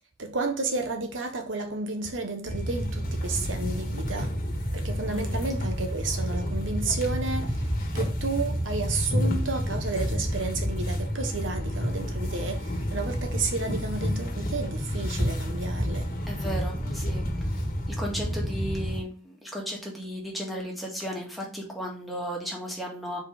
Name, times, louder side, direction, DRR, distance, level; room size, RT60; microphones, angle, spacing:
voice 1, 0.2-4.3 4.7-16.1, right 3 dB, 75° right, 1.2 m, -32 dB
sound 1, 2.5-19.0, equal, 45° left, 1.5 m, -29 dB
voice 2, 5.1-5.4 16.3-17.3 18.0-23.2, equal, ahead, 1.8 m, -35 dB
5.3 x 4.6 x 5.1 m
head